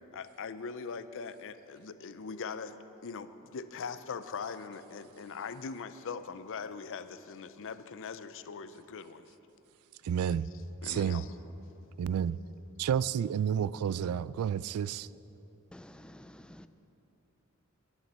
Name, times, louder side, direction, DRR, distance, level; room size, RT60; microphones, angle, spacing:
voice 1, 0.1-2.8 3.0-9.3 10.8-11.3, left 5 dB, 60° left, 0.5 m, -41 dB
voice 2, 10.0-10.4 10.8-11.2 12.0-12.4 12.8-15.1, right 8 dB, 75° right, 0.3 m, -30 dB
voice 3, 15.7-16.7, left 1 dB, 5° left, 0.3 m, -51 dB
20.0 x 9.6 x 4.3 m
head